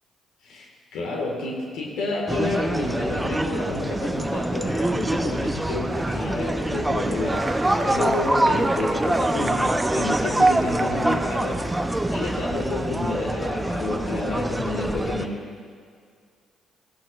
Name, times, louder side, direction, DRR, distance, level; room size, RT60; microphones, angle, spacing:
voice 1, 0.4-15.4, left 2 dB, 75° left, -2 dB, 1.7 m, -30 dB
sound 1, 2.3-15.3, right 1 dB, 15° right, 0.7 m, -25 dB
Applause, 7.2-12.9, right 3 dB, 40° right, 1.0 m, -39 dB
15.0 x 11.0 x 2.5 m, 2.2 s
supercardioid pair, 55°, 0 cm